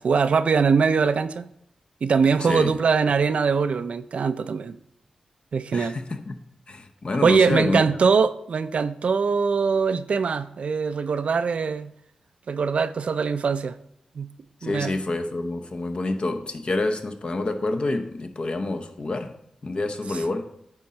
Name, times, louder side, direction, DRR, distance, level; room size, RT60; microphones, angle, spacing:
voice 1, 0.0-1.5 2.0-4.8 5.5-6.0 7.2-11.9 12.5-13.8 14.2-14.3 14.6-14.9, right 5 dB, 70° right, 0.4 m, -22 dB
voice 2, 2.4-2.8 5.7-6.4 6.7-7.8 14.6-19.3 19.6-20.5, left 2 dB, 50° left, 0.8 m, -27 dB
9.6 x 3.8 x 4.2 m
cardioid pair, 60°, 2 cm